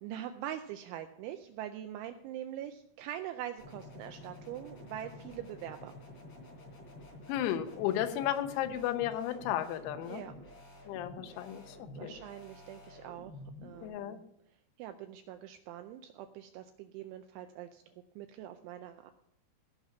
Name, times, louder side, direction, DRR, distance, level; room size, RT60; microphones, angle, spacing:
voice 1, 0.0-5.9 10.1-10.3 12.0-13.3 13.6-14.2 14.8-19.1, right 11 dB, 85° right, 7 dB, 2.7 m, -43 dB
sound 1, 3.6-13.9, left 1 dB, 35° left, 3.9 m, -50 dB
voice 2, 7.3-10.2 10.9-12.1 13.8-14.2, left 11 dB, 90° left, 9 dB, 3.7 m, -34 dB
17.0 x 5.8 x 5.9 m, 0.75 s
omnidirectional pair, 6.0 m